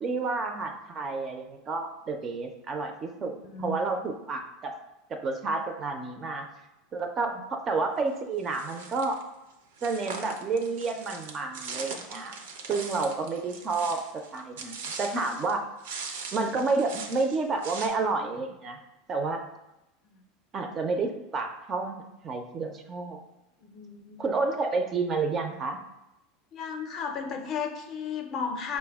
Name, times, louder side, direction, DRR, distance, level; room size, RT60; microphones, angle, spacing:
voice 1, 0.0-4.7 5.1-6.5 6.9-9.2 9.8-12.4 12.7-15.6 16.3-18.8 19.1-19.4 20.5-23.2 24.2-25.8, right 3 dB, 25° right, 5 dB, 0.4 m, -30 dB
voice 2, 3.2-3.8 23.6-24.3 26.5-28.8, left 6 dB, 35° left, 4 dB, 0.5 m, -34 dB
sound 1, 8.5-9.2 9.8-15.5 15.8-17.9, right 4 dB, 85° right, 0.5 m, -40 dB
5.2 x 2.1 x 3.3 m, 0.93 s
supercardioid pair, 145°, 0 cm